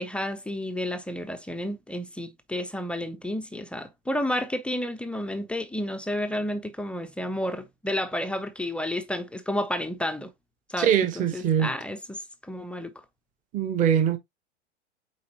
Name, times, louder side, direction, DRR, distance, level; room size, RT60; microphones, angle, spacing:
voice 1, 0.0-10.3 10.7-12.2 12.5-12.9, left 1 dB, 5° left, 0.4 m, -31 dB
voice 2, 10.8-11.7 13.5-14.2, right 9 dB, 25° right, 1.0 m, -22 dB
8.5 x 4.0 x 2.9 m
figure-of-eight pair, 95°, 34 cm